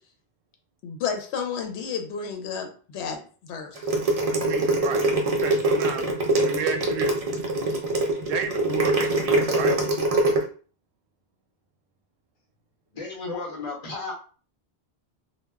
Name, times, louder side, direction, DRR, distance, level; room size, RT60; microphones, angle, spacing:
voice 1, 0.8-3.9, left 6 dB, 75° left, 4 dB, 0.9 m, -32 dB
sound 1, 3.8-10.4, right 2 dB, 45° right, 0.5 m, -23 dB
voice 2, 4.3-6.0 6.4-7.2 8.3-9.8, right 7 dB, 75° right, 5 dB, 0.8 m, -32 dB
voice 3, 12.9-14.1, left 3 dB, 35° left, -2 dB, 0.8 m, -33 dB
2.2 x 2.1 x 3.4 m, 0.40 s
omnidirectional pair, 1.1 m